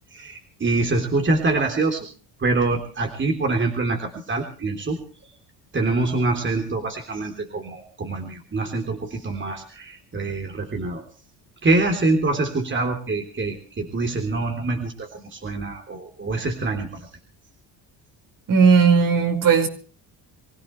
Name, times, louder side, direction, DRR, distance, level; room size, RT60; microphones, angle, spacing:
voice 1, 0.1-2.1 2.4-5.0 5.7-11.0 11.6-17.1, right 2 dB, 25° right, 3 dB, 3.7 m, -25 dB
voice 2, 18.5-19.7, right 5 dB, 50° right, 4 dB, 5.5 m, -16 dB
26.0 x 16.5 x 3.3 m, 0.41 s
cardioid pair, 105°, 42 cm